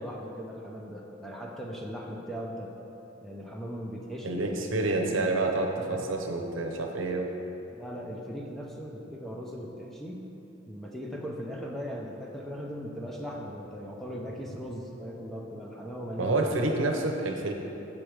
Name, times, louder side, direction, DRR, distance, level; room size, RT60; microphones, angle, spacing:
voice 1, 0.0-2.7 3.2-4.6 4.8-4.9 5.7-6.0 7.7-10.4 10.6-16.5, equal, ahead, -2 dB, 0.5 m, -38 dB
voice 2, 4.2-7.3 16.2-17.5, right 2 dB, 80° right, 2 dB, 0.7 m, -28 dB
7.4 x 4.7 x 5.0 m, 2.9 s
head